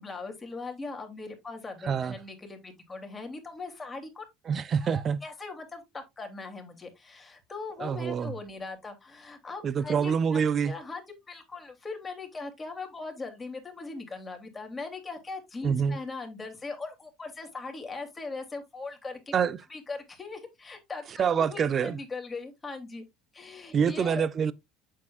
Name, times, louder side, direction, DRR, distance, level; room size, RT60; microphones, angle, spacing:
voice 1, 0.0-4.2 4.8-11.0 11.3-19.3 19.7-23.0 23.3-24.3, left 3 dB, 20° left, 3.1 m, -40 dB
voice 2, 1.8-2.2 4.5-5.2 7.8-8.3 9.6-10.7 15.6-16.0 19.3-19.6 21.2-22.0 23.7-24.5, right 7 dB, 40° right, 0.7 m, -26 dB
8.2 x 7.6 x 2.5 m
hypercardioid pair, 80°, 0 cm